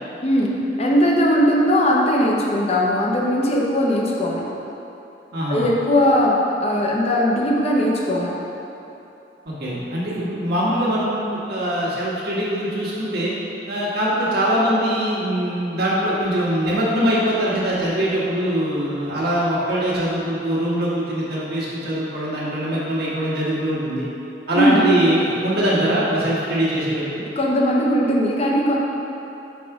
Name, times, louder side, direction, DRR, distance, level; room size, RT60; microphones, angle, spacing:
voice 1, 0.8-4.5 5.5-8.4 24.5-24.8 27.4-28.8, equal, 35° left, -2 dB, 0.7 m, -19 dB
voice 2, 5.3-5.6 9.4-13.3 13.7-24.1 24.5-27.2, right 1 dB, 60° right, -7 dB, 1.5 m, -22 dB
4.8 x 4.2 x 5.9 m, 3.0 s
head